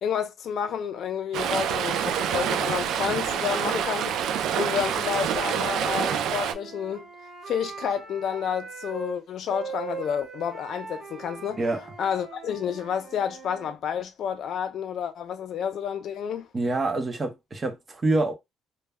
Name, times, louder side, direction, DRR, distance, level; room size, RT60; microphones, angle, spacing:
voice 1, 0.0-7.1 7.5-11.6 12.0-16.5, left 8 dB, 60° left, 0.4 m, -30 dB
Stream, 1.3-6.5, right 8 dB, 80° right, 0.3 m, -27 dB
Wind instrument woodwind instrument, 5.5-9.2 9.5-13.8, right 5 dB, 60° right, 0.8 m, -41 dB
voice 2, 16.5-18.3, right 2 dB, 25° right, 0.6 m, -26 dB
2.2 x 2.0 x 3.4 m
cardioid pair, 150°, 0 cm